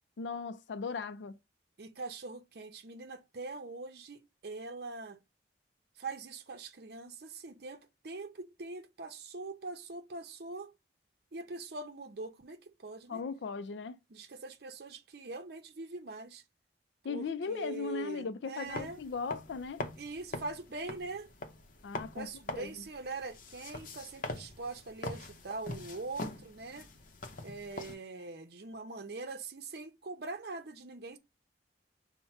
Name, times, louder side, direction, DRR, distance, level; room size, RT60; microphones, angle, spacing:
voice 1, 0.2-1.4 13.1-14.0 17.0-19.8 21.8-22.7, left 5 dB, 80° left, 0.4 m, -38 dB
voice 2, 1.8-5.2 6.0-10.7 11.3-13.2 14.1-16.4 17.1-19.0 20.0-21.3 22.1-26.9 27.4-31.2, right 3 dB, 60° right, 0.6 m, -43 dB
sound 1, 18.7-28.0, left 2 dB, 50° left, 0.7 m, -43 dB
5.6 x 2.1 x 4.3 m
head